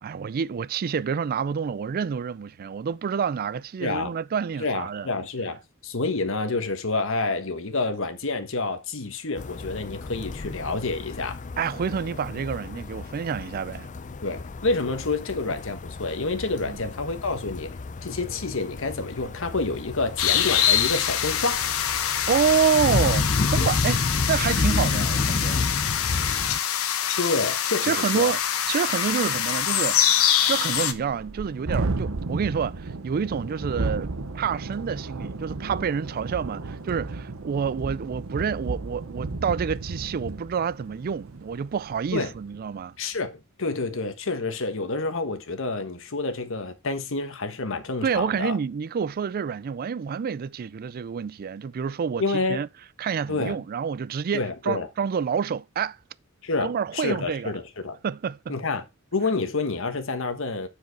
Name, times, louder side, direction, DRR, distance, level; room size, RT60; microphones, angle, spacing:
voice 1, 0.0-5.1 11.6-13.9 16.6-16.8 22.3-25.6 27.8-28.4 28.7-42.9 48.0-52.7 53.0-56.0 56.6-57.5 58.0-58.5, right 6 dB, 45° right, 0.3 m, -28 dB
voice 2, 3.8-4.1 4.6-11.4 14.2-17.7 18.0-21.6 27.2-28.3 42.1-42.3 43.0-48.6 52.2-52.6 53.3-53.6 54.3-54.9 56.4-58.0 58.5-58.8 59.1-60.7, left 3 dB, 65° left, 1.4 m, -28 dB
sound 1, 9.4-26.6, left 3 dB, 35° left, 0.5 m, -31 dB
sound 2, 20.2-30.9, left 9 dB, 85° left, 1.1 m, -25 dB
Thunderstorm, 28.2-28.3 28.7-28.8 29.1-42.7, right 3 dB, 70° right, 0.8 m, -34 dB
9.1 x 4.9 x 4.7 m
head